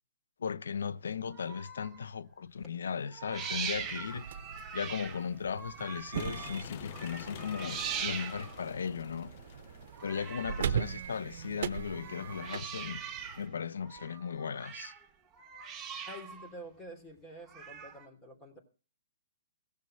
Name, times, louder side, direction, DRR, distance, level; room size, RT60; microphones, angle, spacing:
voice 1, 0.4-4.4 4.7-9.3 10.0-13.0 13.4-14.9, left 6 dB, 85° left, 0.6 m, -37 dB
sound 1, 1.3-2.1 3.1-6.6 6.9-8.7 9.9-10.9 11.9-13.5 13.8-15.1 15.4-16.5 17.5-18.1, right 7 dB, 15° right, 1.2 m, -42 dB
sound 2, 3.5-13.5, right 8 dB, 60° right, 0.8 m, -40 dB
sound 3, 6.1-11.9, left 12 dB, 45° left, 0.5 m, -49 dB
voice 2, 16.0-18.6, equal, 15° left, 2.8 m, -48 dB
16.0 x 6.7 x 7.6 m
hypercardioid pair, 145°, 0 cm